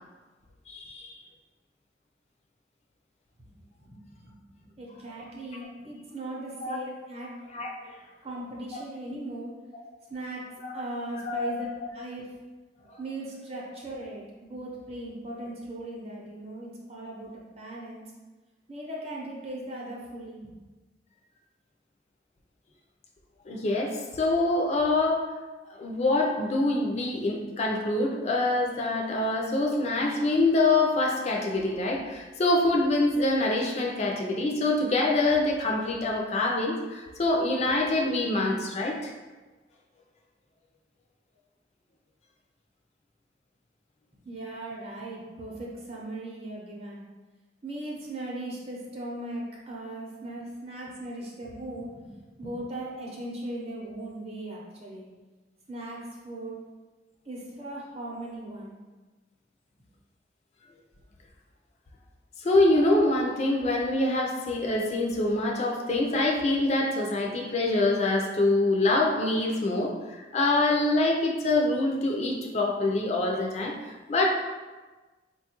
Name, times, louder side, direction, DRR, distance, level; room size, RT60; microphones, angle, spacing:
voice 1, 0.7-1.2 5.2-5.3 6.6-6.8 7.5-7.9 8.7-8.8 9.7-9.9 10.6-10.8 11.2-11.9 12.9-13.0 23.5-25.3 25.7-39.1 62.4-74.3, left 2 dB, 35° left, 0 dB, 0.4 m, -25 dB
voice 2, 3.8-4.4 4.8-7.3 8.2-9.5 10.1-10.4 10.7-12.2 13.0-18.0 18.7-20.6 44.2-47.1 47.6-55.1 55.7-56.6 57.2-58.8, right 1 dB, 35° right, -3 dB, 0.7 m, -38 dB
4.2 x 2.3 x 2.9 m, 1.3 s
head